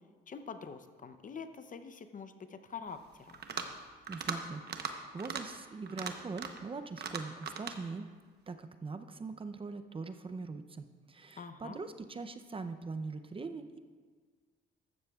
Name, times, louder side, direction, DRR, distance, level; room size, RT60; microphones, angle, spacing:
voice 1, 0.3-3.4 11.4-11.8, left 5 dB, 40° left, 9 dB, 0.7 m, -45 dB
sound 1, 3.3-3.8 4.1-4.4 4.7-4.9 5.2-5.4 5.9-6.6 7.0-7.8, right 6 dB, 55° right, 1.0 m, -38 dB
voice 2, 4.1-8.1 8.5-13.8, right 4 dB, 25° right, 8 dB, 0.6 m, -42 dB
14.5 x 12.5 x 2.4 m, 1.5 s
cardioid pair, 90°, 20 cm